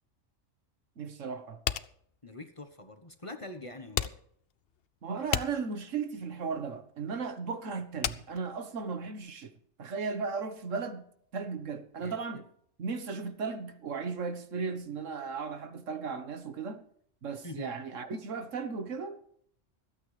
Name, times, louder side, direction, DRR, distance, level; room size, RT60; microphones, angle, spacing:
voice 1, 1.0-1.6 5.0-9.5 9.8-12.4 12.8-16.8 17.2-19.2, right 5 dB, 80° right, 1.6 m, -36 dB
sound 1, 1.6-9.3, left 9 dB, 60° left, 0.8 m, -36 dB
voice 2, 2.2-4.1 12.0-12.2 17.4-17.7, left 2 dB, 25° left, 1.2 m, -44 dB
25.5 x 9.0 x 3.3 m
omnidirectional pair, 1.3 m